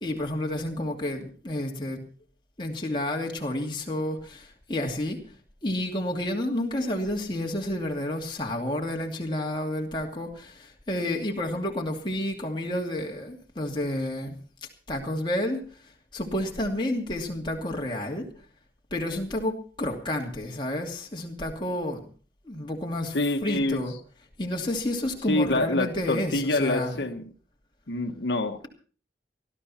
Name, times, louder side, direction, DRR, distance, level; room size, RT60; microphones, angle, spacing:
voice 1, 0.0-2.0 2.6-5.2 5.6-14.4 14.9-15.6 16.1-18.3 18.9-22.1 22.4-23.2 23.4-23.9 24.4-27.1, left 1 dB, 25° left, 0 dB, 2.6 m, -30 dB
voice 2, 23.1-23.8 25.3-27.3 27.9-28.7, left 2 dB, 90° left, 6 dB, 1.3 m, -26 dB
20.0 x 13.0 x 4.3 m, 0.40 s
head